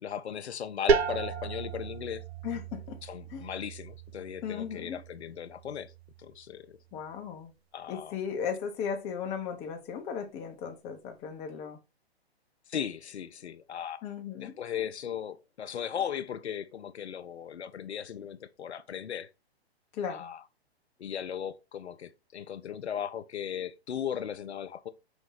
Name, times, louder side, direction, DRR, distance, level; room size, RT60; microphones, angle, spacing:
voice 1, 0.0-2.2 3.1-5.9 6.2-6.8 7.7-8.2 12.7-14.0 14.4-19.3 20.1-20.4 21.0-24.9, left 8 dB, 90° left, 0.6 m, -37 dB
sound 1, 0.9-6.4, right 5 dB, 75° right, 0.7 m, -33 dB
voice 2, 2.4-3.0 3.3-3.5 4.4-5.0 6.9-7.5 7.9-11.8 14.0-14.5 19.9-20.3, left 7 dB, 20° left, 0.6 m, -36 dB
5.1 x 2.6 x 3.8 m
hypercardioid pair, 125°, 32 cm